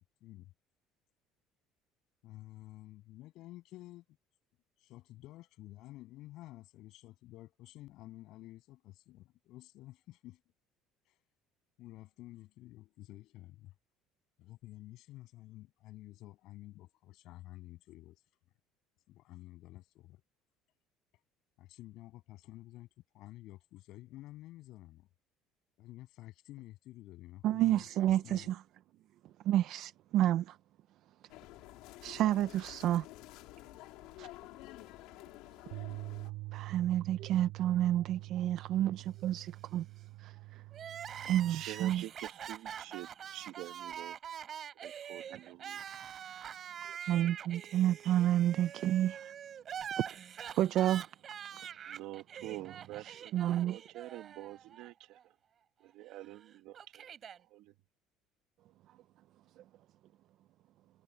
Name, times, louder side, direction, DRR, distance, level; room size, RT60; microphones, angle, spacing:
voice 1, 0.2-0.5 2.2-4.2 4.8-10.4 11.1-11.2 11.8-13.7 14.4-18.2 19.1-20.2 21.6-22.9 23.1-25.1 25.8-28.6, left 16 dB, 50° left, 7.9 m, -51 dB
voice 2, 27.4-28.6 29.4-30.6 32.0-33.1 34.2-34.3 36.5-39.9 40.2-40.6 41.2-42.1 45.3-45.4 46.8-49.3 50.0-50.1 50.5-51.1 52.4-53.8, right 12 dB, 45° right, 0.5 m, -30 dB
sound 1, 31.3-36.3, left 18 dB, 70° left, 3.7 m, -51 dB
Bass guitar, 35.7-42.0, right 20 dB, 80° right, 2.4 m, -46 dB
Crying sobbing, 40.7-54.9 55.2-55.3 56.2-57.4, right 8 dB, 30° right, 3.9 m, -45 dB
voice 3, 41.5-43.1 43.3-44.1 44.8-45.8 51.9-53.3 53.6-54.9 55.9-57.0 57.5-57.6, right 16 dB, 65° right, 1.9 m, -46 dB
cardioid pair, 180°, 0 cm